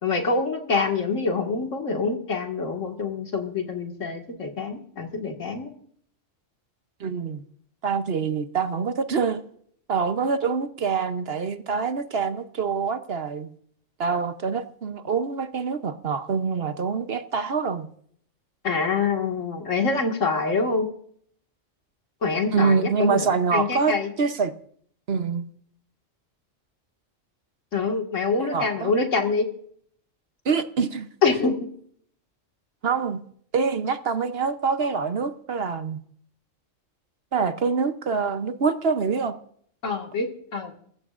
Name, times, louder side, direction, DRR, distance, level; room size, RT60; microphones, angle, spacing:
voice 1, 0.0-5.7 18.6-20.9 22.2-23.3 23.5-24.1 27.7-29.5 31.2-31.6 39.8-40.7, left 4 dB, 80° left, 2.3 m, -25 dB
voice 2, 7.0-7.4 7.8-9.4 9.9-13.5 14.0-17.9 22.5-24.5 25.1-25.4 28.4-28.9 30.4-31.1 32.8-33.2 33.5-36.0 37.3-39.3, right 5 dB, 55° right, 1.0 m, -25 dB
22.5 x 14.5 x 2.5 m
omnidirectional pair, 1.3 m